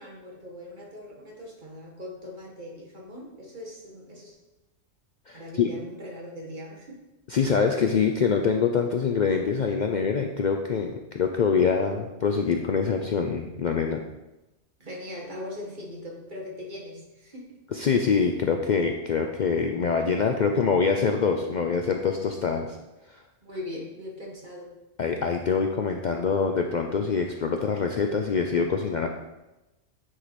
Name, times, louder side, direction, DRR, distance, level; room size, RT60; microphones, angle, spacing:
voice 1, 0.0-4.4 5.3-7.0 14.8-17.6 23.4-24.7, left 1 dB, 45° right, -2 dB, 1.7 m, -40 dB
voice 2, 5.3-5.7 7.3-14.0 17.7-22.8 23.1-23.2 25.0-29.1, left 5 dB, 55° left, 4 dB, 0.6 m, -25 dB
8.9 x 4.8 x 4.1 m, 0.99 s
omnidirectional pair, 1.2 m